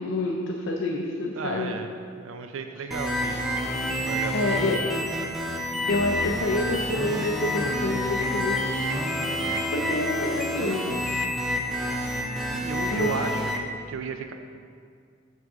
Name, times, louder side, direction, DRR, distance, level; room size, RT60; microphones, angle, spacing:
voice 1, 0.0-1.8 4.3-4.9 5.9-8.9 9.3-10.8 12.9-13.1, left 2 dB, 65° left, 0 dB, 0.5 m, -28 dB
voice 2, 1.3-1.9 2.2-3.4 4.0-5.1 9.4-9.9 12.6-13.6 13.9-14.3, right 5 dB, 80° right, 6 dB, 0.4 m, -35 dB
sound 1, 2.9-13.6, left 1 dB, ahead, 0.5 m, -28 dB
6.1 x 3.7 x 6.1 m, 2.2 s
head